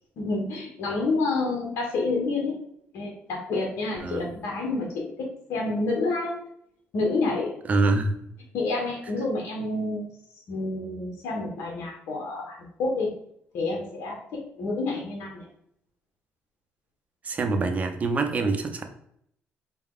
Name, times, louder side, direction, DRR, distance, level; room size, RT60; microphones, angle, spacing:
voice 1, 0.2-2.6 2.9-6.4 6.9-7.5 8.5-10.1 10.5-13.1 13.5-15.5, left 3 dB, 75° left, 0 dB, 0.9 m, -28 dB
voice 2, 7.7-8.1 17.2-18.8, right 3 dB, 35° right, 4 dB, 0.6 m, -25 dB
4.5 x 2.3 x 3.6 m, 0.70 s
cardioid pair, 105°, 4 cm